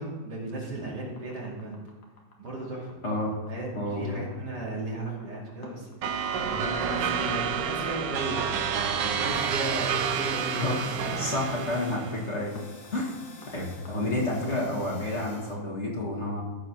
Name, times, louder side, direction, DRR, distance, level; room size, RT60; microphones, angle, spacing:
voice 1, 0.0-1.8 2.4-3.0 3.5-6.1 6.4-8.4 8.7-11.2, right 2 dB, 65° right, -4 dB, 3.2 m, -36 dB
sound 1, 1.2-14.8, left 3 dB, 65° left, 2.0 m, -50 dB
voice 2, 3.7-4.2 10.5-12.6 12.9-13.1 13.5-16.4, left 1 dB, 40° left, -2 dB, 2.0 m, -30 dB
sound 2, 6.0-12.2, right 6 dB, 90° right, 1.5 m, -29 dB
sound 3, 9.2-15.5, left 2 dB, 85° left, 2.2 m, -49 dB
14.0 x 4.8 x 6.0 m, 1.3 s
omnidirectional pair, 1.9 m